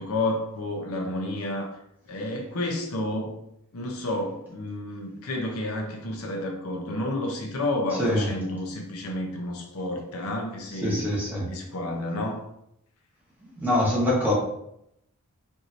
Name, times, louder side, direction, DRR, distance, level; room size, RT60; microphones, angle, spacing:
voice 1, 0.0-1.8 2.1-3.4 3.7-11.0 11.5-12.4, left 1 dB, 75° left, 1 dB, 0.7 m, -30 dB
voice 2, 10.8-11.5 13.5-14.3, left 1 dB, 10° right, -6 dB, 1.1 m, -24 dB
4.6 x 2.7 x 2.6 m, 0.78 s
head